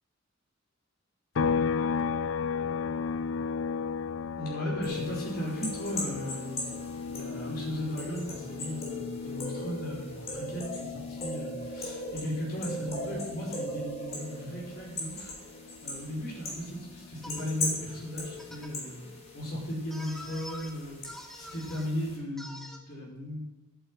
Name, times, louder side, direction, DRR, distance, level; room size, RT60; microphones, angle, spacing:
sound 1, 1.3-14.9 15.2-17.4, left 5 dB, 70° left, 0.4 m, -35 dB
voice 1, 4.4-6.7 7.0-15.3 15.8-19.0 19.3-21.0 21.3-23.4, equal, 50° left, -3 dB, 5.3 m, -36 dB
sound 2, 4.8-22.2, left 1 dB, 30° left, 3.8 m, -40 dB
sound 3, 17.2-17.4 18.4-18.7 19.9-20.7 21.0-21.9 22.4-22.8, equal, ahead, 1.4 m, -45 dB
11.5 x 9.0 x 8.8 m, 1.1 s
head